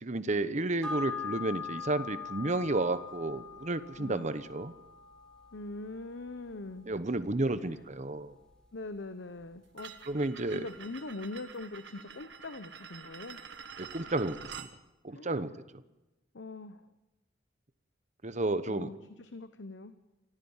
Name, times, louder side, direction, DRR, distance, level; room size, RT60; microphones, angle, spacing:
voice 1, 0.0-4.7 6.9-8.3 10.1-10.7 13.8-14.7 15.0-15.5 18.2-18.9, right 2 dB, 40° right, 12 dB, 1.0 m, -32 dB
sound 1, 0.8-9.6 9.9-10.0, left 5 dB, 5° left, 3.9 m, -43 dB
voice 2, 5.5-6.9 7.6-7.8 8.7-9.9 10.4-13.4 15.1-15.5 16.3-16.9 18.7-19.9, left 2 dB, 70° left, 10 dB, 0.9 m, -42 dB
sound 2, 9.8-14.7, right 6 dB, 65° right, 1.3 m, -47 dB
24.5 x 15.0 x 7.3 m, 1.0 s
head